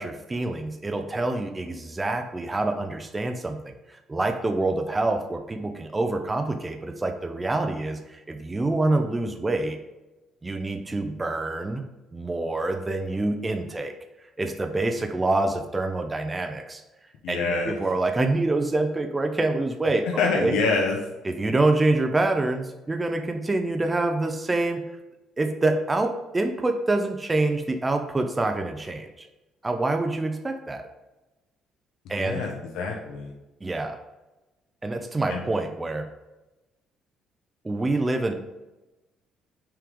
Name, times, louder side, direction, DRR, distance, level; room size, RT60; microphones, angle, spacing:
voice 1, 0.0-9.8 10.4-11.8 12.1-13.9 14.4-16.8 17.3-20.1 20.3-20.5 21.3-24.9 25.4-29.3 29.6-30.8 32.1-32.4 33.6-34.0 34.8-36.1 37.6-38.3, right 2 dB, 15° right, 5 dB, 0.4 m, -26 dB
voice 2, 17.2-17.8 20.0-21.0 32.2-33.3 35.3-35.4, left 4 dB, 85° left, 0 dB, 0.9 m, -26 dB
5.7 x 4.9 x 3.6 m, 1.0 s
cardioid pair, 175°, 0 cm